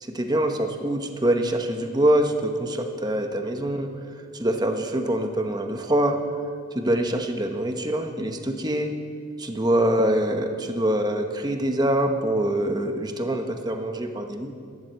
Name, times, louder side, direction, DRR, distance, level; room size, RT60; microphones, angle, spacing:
voice 1, 0.0-3.9 4.3-6.2 6.7-8.9 9.4-14.5, right 1 dB, 20° right, 5 dB, 0.9 m, -24 dB
12.5 x 11.0 x 7.6 m, 2.3 s
head